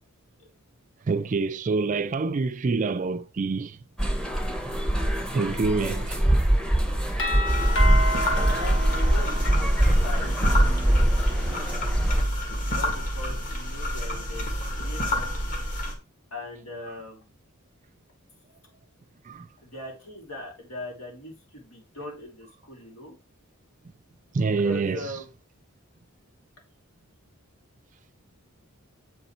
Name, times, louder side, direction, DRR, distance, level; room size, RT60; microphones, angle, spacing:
voice 1, 1.1-3.8 5.3-6.2 8.4-8.6 19.3-19.5 24.3-25.1, right 4 dB, 35° right, 0.3 m, -26 dB
sound 1, 4.0-12.2, right 1 dB, 5° left, 0.8 m, -23 dB
Doorbell, 7.2-10.0, left 1 dB, 60° left, 1.9 m, -30 dB
sound 2, 7.4-15.9, equal, 40° left, 1.8 m, -29 dB
voice 2, 8.4-9.7 10.0-10.5 11.3-11.8 12.7-15.3 16.3-17.3 19.6-23.2 24.6-25.3, left 1 dB, 80° left, 3.1 m, -40 dB
7.9 x 3.9 x 4.3 m
head